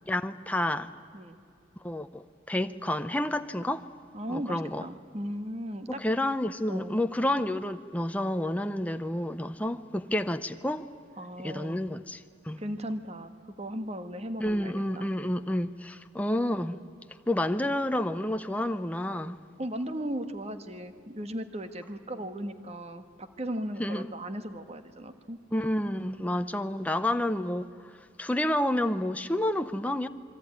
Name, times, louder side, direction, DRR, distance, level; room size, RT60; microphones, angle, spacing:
voice 1, 0.1-0.9 1.8-3.9 4.3-4.9 5.9-10.9 11.4-12.6 14.4-16.8 17.3-19.4 23.8-24.1 25.5-27.7 28.2-30.1, left 1 dB, 5° left, 0.7 m, -29 dB
voice 2, 4.1-6.0 6.7-6.9 11.2-11.8 12.6-13.3 13.6-15.1 19.6-25.4, equal, 30° right, 1.4 m, -37 dB
26.5 x 23.5 x 9.6 m
head